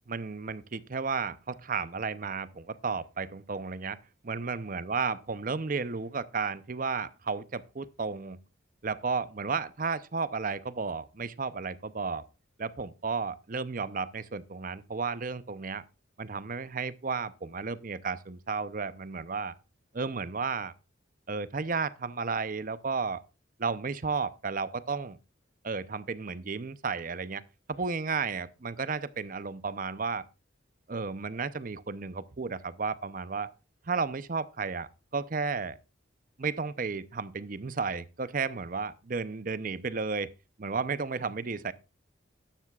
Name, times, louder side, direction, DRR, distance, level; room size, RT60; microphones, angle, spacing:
voice 1, 0.1-8.4 8.8-12.3 12.6-15.8 16.2-19.5 19.9-20.7 21.3-23.2 23.6-25.2 25.6-27.4 27.7-30.2 30.9-33.5 33.9-35.8 36.4-40.3 40.6-41.7, right 4 dB, 45° right, 0.7 m, -33 dB
12.5 x 12.0 x 2.4 m
head